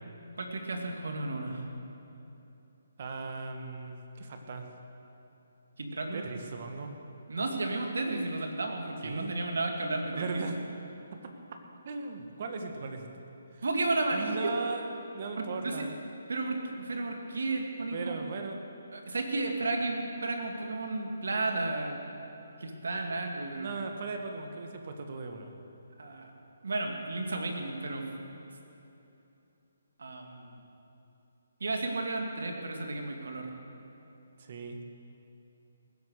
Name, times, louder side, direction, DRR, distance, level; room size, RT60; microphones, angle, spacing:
voice 1, 0.4-1.7 5.8-6.3 7.3-10.4 13.6-14.5 15.4-15.8 16.3-18.2 18.9-22.0 22.6-23.7 26.0-26.3 26.6-28.1 30.0-30.6 31.6-33.5, right 2 dB, 75° right, 3 dB, 2.5 m, -33 dB
voice 2, 3.0-4.7 6.1-6.9 9.0-9.4 10.1-10.6 11.8-13.3 13.5-13.6 14.1-14.9 15.1-16.0 17.9-18.6 23.6-25.5 34.4-34.8, right 4 dB, 45° right, 4 dB, 1.8 m, -38 dB
19.5 x 11.0 x 6.7 m, 2.9 s
hypercardioid pair, 155°, 0 cm